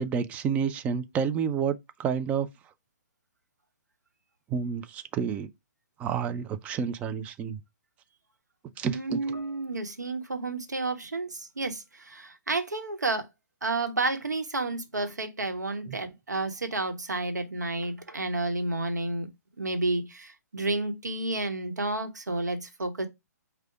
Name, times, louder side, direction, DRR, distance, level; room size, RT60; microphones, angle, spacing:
voice 1, 0.0-2.5 4.5-5.5 6.0-7.6 8.8-9.2, right 7 dB, 15° right, 0.3 m, -29 dB
voice 2, 8.9-13.3 13.6-19.3 19.6-23.1, right 2 dB, 80° right, 1.0 m, -31 dB
4.7 x 2.2 x 4.5 m
figure-of-eight pair, 125°, 9 cm